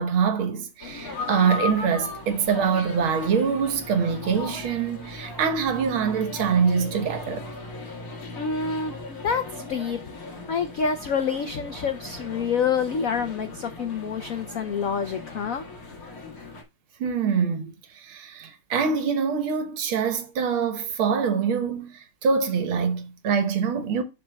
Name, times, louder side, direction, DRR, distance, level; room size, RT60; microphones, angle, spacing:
voice 1, 0.0-7.5 17.0-24.0, right 6 dB, 75° right, 1.9 m, -24 dB
sound 1, 0.8-16.6, left 3 dB, 45° left, 2.1 m, -38 dB
voice 2, 8.3-9.4 9.7-15.6, left 6 dB, 85° left, 0.7 m, -27 dB
12.0 x 4.4 x 2.2 m
omnidirectional pair, 2.3 m